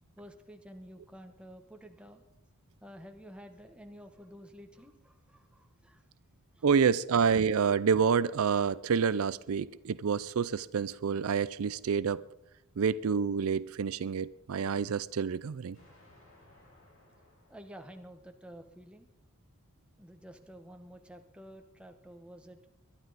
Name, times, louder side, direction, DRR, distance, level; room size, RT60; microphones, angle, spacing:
voice 1, 0.2-2.2 2.8-6.0 6.6-6.7 17.5-19.1 20.0-22.6, equal, 5° right, 1.2 m, -51 dB
voice 2, 6.6-12.2 12.8-15.8, right 6 dB, 80° right, 0.4 m, -28 dB
Explosion, 15.7-18.7, left 1 dB, 60° left, 6.1 m, -62 dB
22.0 x 11.5 x 4.1 m
head